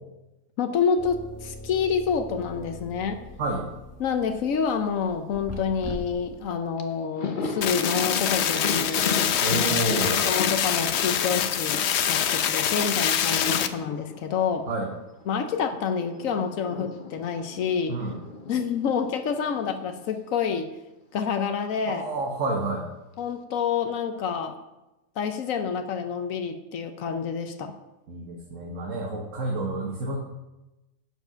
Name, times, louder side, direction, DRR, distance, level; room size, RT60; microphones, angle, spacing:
voice 1, 0.6-3.2 4.0-9.3 10.2-11.8 12.1-14.7 15.3-18.0 18.5-20.7 21.1-22.0 23.2-24.6 25.2-27.7, left 6 dB, 80° left, 7 dB, 1.2 m, -28 dB
sound 1, 1.0-6.5, left 1 dB, 10° left, 1.2 m, -42 dB
Thunder, 6.4-6.5 6.8-15.6 15.9-20.2 20.4-20.6 21.8-22.5, left 4 dB, 45° left, 0.9 m, -36 dB
sound 2, 7.6-13.7, left 9 dB, 65° left, 0.8 m, -25 dB
voice 2, 9.4-10.3 14.7-14.9 17.9-18.1 21.9-22.9 28.1-30.2, right 2 dB, 70° right, 0 dB, 1.5 m, -29 dB
9.1 x 7.3 x 5.8 m, 1.0 s
omnidirectional pair, 1.4 m